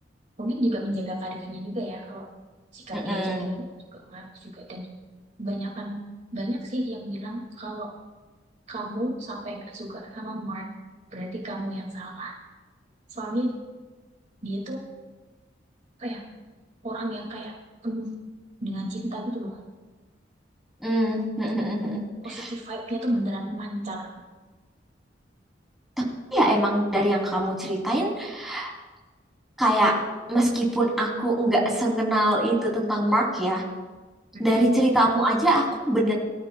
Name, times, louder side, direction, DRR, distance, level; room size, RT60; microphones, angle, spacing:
voice 1, 0.4-2.2 2.7-3.4 3.9-4.9 5.4-6.0 6.3-7.9 8.7-10.7 11.1-12.3 13.1-13.5 14.4-14.8 16.0-16.2 16.8-17.5 17.8-18.1 18.6-19.6 22.2-24.1 34.3-34.6, right 1 dB, 40° right, -1 dB, 2.1 m, -32 dB
voice 2, 2.9-3.5 20.8-22.0 22.3-22.5 26.3-28.7 29.6-30.0 30.3-33.6 34.4-36.1, right 1 dB, ahead, -3 dB, 2.9 m, -23 dB
23.0 x 13.5 x 2.3 m, 1.3 s
head